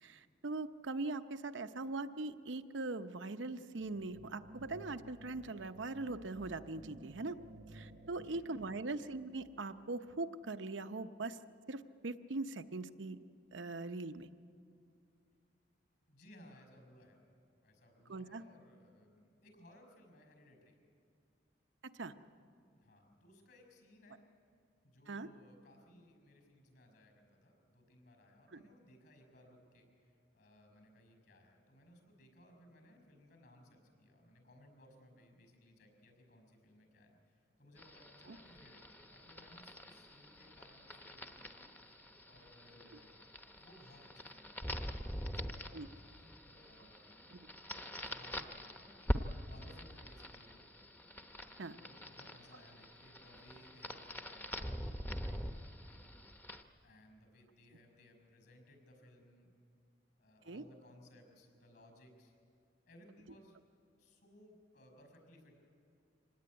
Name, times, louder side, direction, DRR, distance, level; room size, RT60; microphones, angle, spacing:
voice 1, 0.0-7.4 7.7-11.4 11.7-13.2 13.5-14.3 18.1-18.4 21.8-22.1 25.1-25.3 38.3-38.4 45.7-45.9 47.3-47.4 51.6-51.8 60.5-60.6, right 3 dB, 85° right, 10 dB, 0.8 m, -41 dB
sound 1, 3.8-10.5, right 2 dB, 50° right, 0.7 m, -56 dB
voice 2, 8.2-8.5 16.1-17.2 17.6-20.8 22.7-24.2 24.8-45.8 46.0-50.6 51.7-56.0 56.8-59.5 60.2-62.3 62.9-63.6 64.0-65.6, left 1 dB, 60° left, 5 dB, 5.7 m, -62 dB
sound 2, 37.8-56.6, equal, 10° left, 0.9 m, -44 dB
25.0 x 18.0 x 9.7 m, 2.4 s
head